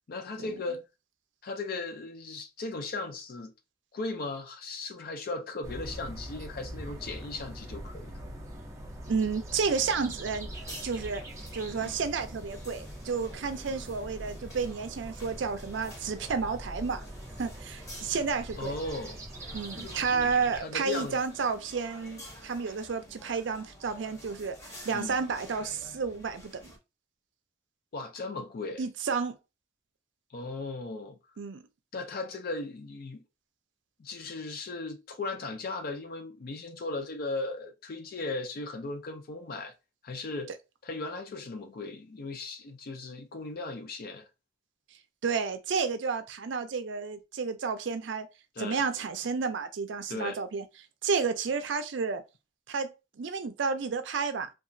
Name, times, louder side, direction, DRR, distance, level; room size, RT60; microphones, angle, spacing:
voice 1, 0.1-0.9 1.4-3.5 3.9-8.2 11.8-12.0 18.6-19.2 19.7-20.3 20.6-21.2 24.9-25.2 27.9-28.8 30.3-31.2 31.9-33.2 34.0-39.7 40.0-40.5 40.8-44.3 48.6-48.8 50.1-50.4, left 3 dB, 50° left, 0.4 m, -37 dB
sound 1, 5.6-20.6, right 1 dB, 15° right, 0.5 m, -43 dB
voice 2, 9.1-10.5 10.8-11.2 11.5-17.0 17.4-18.7 19.5-24.6 24.9-26.7 28.8-29.4 31.4-31.6 45.2-48.3 48.6-50.6 51.0-52.2 52.7-54.5, right 5 dB, 70° right, 0.4 m, -31 dB
sound 2, 10.5-26.8, equal, 15° left, 0.7 m, -50 dB
2.8 x 2.3 x 2.6 m
head